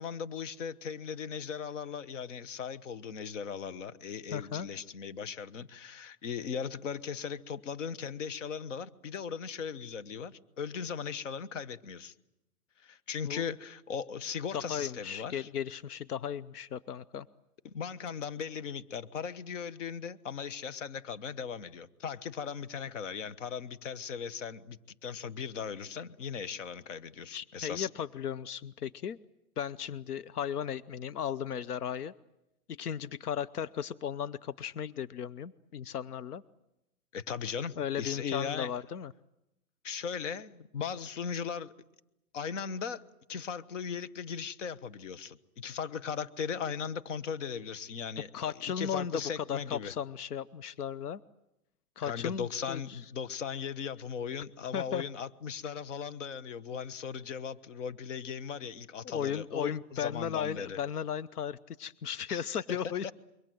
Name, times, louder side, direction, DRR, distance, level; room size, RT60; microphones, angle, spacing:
voice 1, 0.0-12.1 12.8-15.5 17.6-27.9 37.1-38.7 39.8-41.7 42.3-43.0 43.3-49.9 52.0-60.8 62.3-62.4 62.7-62.8 63.0-63.1, left 6 dB, 55° left, 1.2 m, -38 dB
voice 2, 4.3-4.7 13.2-13.4 14.7-17.3 27.3-29.2 29.6-32.1 32.7-36.4 37.8-39.1 48.3-51.2 52.0-53.0 54.7-55.0 59.0-63.1, left 8 dB, 85° left, 0.9 m, -36 dB
27.5 x 23.0 x 7.8 m
hypercardioid pair, 155°, 45 cm